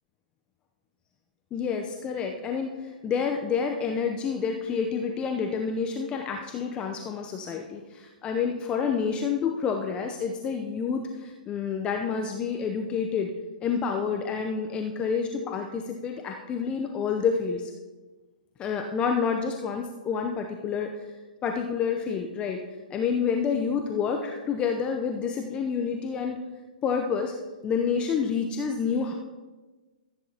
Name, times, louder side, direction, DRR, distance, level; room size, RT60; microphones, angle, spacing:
voice 1, 1.5-13.3 13.6-17.7 18.6-20.9 21.4-22.6 22.9-26.4 26.8-27.3 27.6-29.1, left 6 dB, 20° left, 3 dB, 0.7 m, -28 dB
14.0 x 8.8 x 2.9 m, 1.3 s
hypercardioid pair, 125°, 5 cm